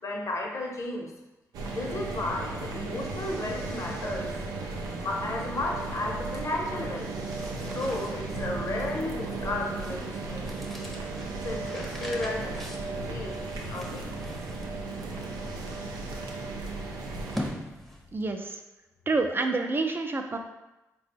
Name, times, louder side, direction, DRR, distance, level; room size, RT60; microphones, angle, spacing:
voice 1, 0.0-1.1 1.7-4.3 4.6-7.1 7.7-10.6 11.4-12.6 13.1-14.1, left 2 dB, 50° left, -1 dB, 0.9 m, -33 dB
sound 1, 1.5-17.5, right 3 dB, 85° right, 0.4 m, -35 dB
sound 2, 7.2-18.3, equal, 5° left, 0.7 m, -43 dB
voice 2, 18.1-18.6 19.1-20.4, right 3 dB, 35° right, 5 dB, 0.5 m, -28 dB
3.9 x 2.2 x 3.4 m, 0.99 s
supercardioid pair, 50°, 7 cm